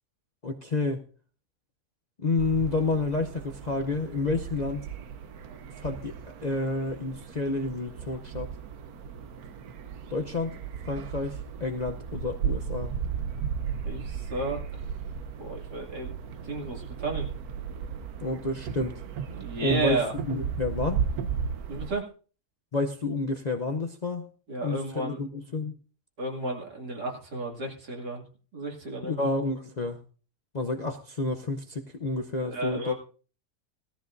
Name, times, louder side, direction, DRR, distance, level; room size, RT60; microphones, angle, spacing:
voice 1, 0.4-1.0 2.2-4.9 5.8-6.2 6.4-8.5 10.1-10.5 10.8-12.9 18.2-19.0 19.6-21.0 22.7-24.3 24.6-25.7 29.0-30.0 30.5-32.9, left 3 dB, 45° left, 3 dB, 0.5 m, -30 dB
sound 1, 2.4-21.9, right 7 dB, 70° right, 1.3 m, -35 dB
voice 2, 13.8-14.6 15.4-16.1 16.4-17.3 19.3-20.1 21.7-22.1 24.5-25.2 26.2-28.2 28.5-29.3 32.4-32.9, right 2 dB, 90° right, 0 dB, 3.0 m, -32 dB
18.0 x 13.5 x 2.6 m, 0.38 s
omnidirectional pair, 1.7 m